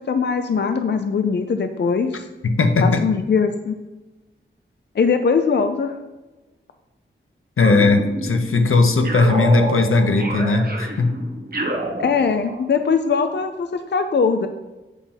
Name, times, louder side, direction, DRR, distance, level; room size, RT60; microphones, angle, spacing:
voice 1, 0.0-2.3 2.8-3.8 4.9-6.0 12.0-14.5, left 5 dB, 55° left, 8 dB, 0.5 m, -21 dB
voice 2, 2.4-3.0 7.6-11.2, left 3 dB, 85° left, 6 dB, 0.9 m, -17 dB
sound 1, 7.6-8.6 9.0-12.7, right 1 dB, 45° right, 1.3 m, -28 dB
8.2 x 4.2 x 5.7 m, 1.1 s
wide cardioid pair, 95°, 21 cm